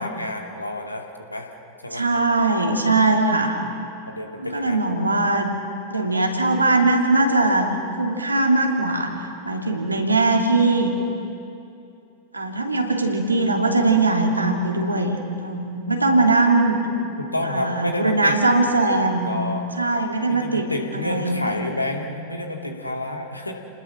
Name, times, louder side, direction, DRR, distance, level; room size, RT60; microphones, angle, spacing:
voice 1, 0.0-1.5 1.8-2.1 4.1-4.9 17.2-18.4 19.2-19.7 20.3-23.5, left 1 dB, 85° left, 2 dB, 2.4 m, -29 dB
voice 2, 1.9-3.6 4.4-5.5 5.9-7.7 8.0-9.1 9.5-10.9 12.3-16.8 17.4-19.3 19.8-20.7 20.9-21.4, right 2 dB, 80° right, 1 dB, 2.8 m, -20 dB
30.0 x 20.0 x 6.2 m, 2.6 s
figure-of-eight pair, 90°, 0 cm